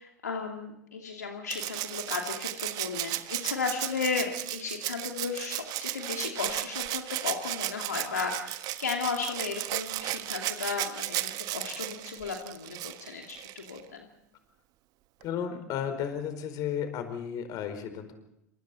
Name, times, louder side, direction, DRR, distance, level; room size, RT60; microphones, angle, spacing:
voice 1, 0.0-14.1, left 5 dB, 80° left, 2 dB, 2.7 m, -35 dB
Rattle (instrument), 1.5-13.8 15.2-15.3, right 16 dB, 45° right, 1.4 m, -35 dB
voice 2, 15.2-18.1, left 8 dB, 45° left, 8 dB, 4.6 m, -33 dB
29.0 x 26.5 x 4.3 m, 0.77 s
figure-of-eight pair, 80°, 9 cm